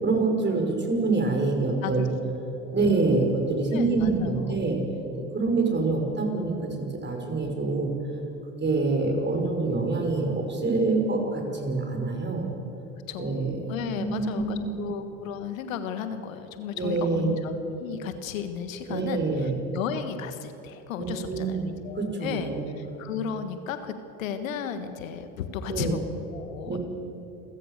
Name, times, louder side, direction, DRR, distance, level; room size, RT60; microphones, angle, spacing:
voice 1, 0.0-2.1 2.7-4.8 5.3-7.9 8.6-12.5 13.2-13.7 14.0-14.9 16.7-17.3 18.9-19.6 21.0-21.7 22.0-22.6 25.7-26.0 26.6-26.8, right 3 dB, 25° right, 2 dB, 5.6 m, -26 dB
voice 2, 3.7-4.3 13.1-22.5 22.8-26.0 26.3-26.8, left 7 dB, 85° left, 9 dB, 1.5 m, -34 dB
28.5 x 15.0 x 6.7 m, 2.9 s
hypercardioid pair, 75°, 39 cm